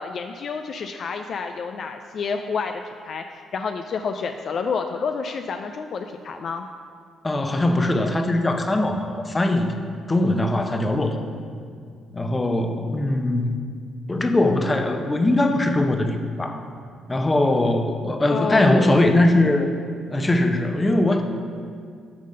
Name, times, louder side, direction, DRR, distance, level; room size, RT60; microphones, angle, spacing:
voice 1, 0.0-2.7 3.0-6.7 18.3-19.0, left 5 dB, 60° left, 6 dB, 0.3 m, -29 dB
voice 2, 7.2-9.8 10.1-11.2 12.1-13.6 14.1-16.6 17.1-19.7 20.1-21.2, left 1 dB, 25° left, 5 dB, 0.7 m, -21 dB
8.6 x 3.7 x 5.4 m, 2.2 s
supercardioid pair, 55°, 0 cm